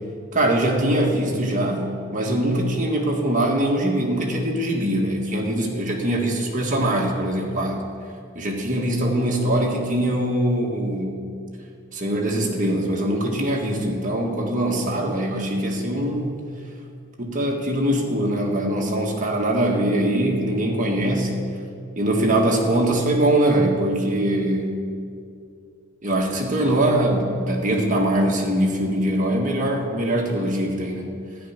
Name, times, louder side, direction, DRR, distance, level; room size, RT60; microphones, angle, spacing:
voice 1, 0.3-7.8 8.4-11.2 11.9-16.4 17.2-21.3 22.0-24.8 26.0-31.1, right 1 dB, 40° right, 0 dB, 1.8 m, -22 dB
13.0 x 10.0 x 6.0 m, 2.4 s
head